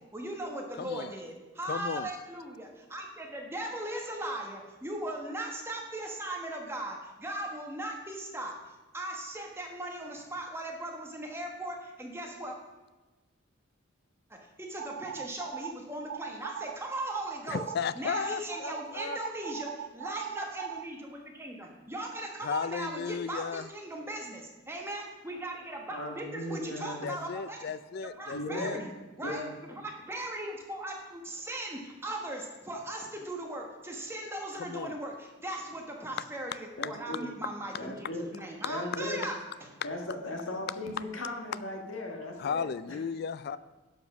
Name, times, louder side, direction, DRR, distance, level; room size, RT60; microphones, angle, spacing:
voice 1, 0.0-12.6 14.3-17.7 17.9-27.7 28.0-28.9 29.2-39.7, right 1 dB, 10° right, 1 dB, 1.3 m, -38 dB
voice 2, 0.8-1.1 1.7-2.1 17.5-19.2 22.4-23.7 27.0-28.8 34.6-35.0 42.4-43.6, left 6 dB, 50° left, 16 dB, 0.4 m, -35 dB
sound 1, 14.8-15.7 16.1-16.8 17.1-17.8 18.1-20.8, right 9 dB, 75° right, 0.4 m, -39 dB
voice 3, 25.9-27.1 28.3-28.9 29.2-29.5 36.8-37.3 37.8-38.3 38.6-39.2 39.8-43.0, left 1 dB, 75° left, 2 dB, 1.7 m, -37 dB
10.5 x 5.3 x 6.0 m, 1.2 s
head